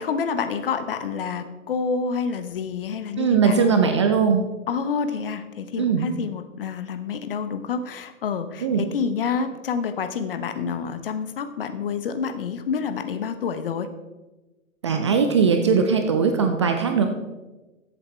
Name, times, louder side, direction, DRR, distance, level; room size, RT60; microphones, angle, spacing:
voice 1, 0.0-3.7 4.7-13.9, left 6 dB, 45° left, 10 dB, 0.9 m, -28 dB
voice 2, 3.2-4.4 5.8-6.1 8.6-8.9 14.8-17.1, right 6 dB, 20° right, 6 dB, 0.5 m, -20 dB
14.5 x 7.8 x 3.4 m, 1.1 s
figure-of-eight pair, 120°, 40 cm